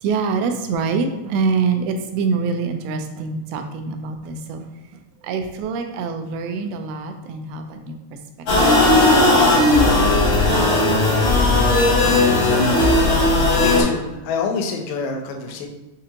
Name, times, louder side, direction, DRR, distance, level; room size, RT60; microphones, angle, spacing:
voice 1, 0.0-4.7 5.2-8.0, right 5 dB, 85° right, 5 dB, 2.4 m, -25 dB
sound 1, 8.5-13.8, left 2 dB, 65° left, 1.3 m, -16 dB
voice 2, 13.6-15.7, left 5 dB, 80° left, 3 dB, 2.4 m, -26 dB
6.4 x 2.5 x 2.8 m, 1.0 s
omnidirectional pair, 4.3 m